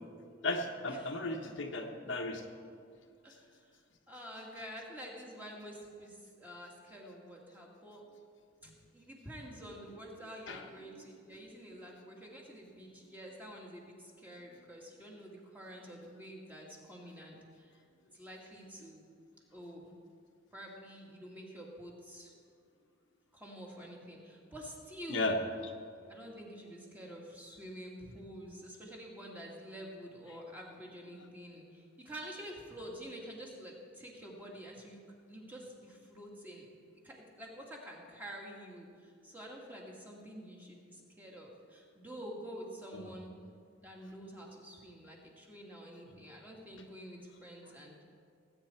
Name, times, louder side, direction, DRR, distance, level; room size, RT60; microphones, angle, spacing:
voice 1, 0.4-2.4 10.5-10.6 25.1-25.4 25.6-25.7 42.9-43.1, left 2 dB, 70° left, 3 dB, 1.1 m, -35 dB
voice 2, 3.2-3.8 4.1-8.0 8.6-17.8 18.1-19.0 19.5-19.9 20.5-22.3 23.3-25.3 26.1-35.0 35.3-36.7 37.0-43.3 43.8-48.0, equal, 10° right, -2 dB, 2.1 m, -48 dB
18.5 x 9.0 x 4.5 m, 2.3 s
head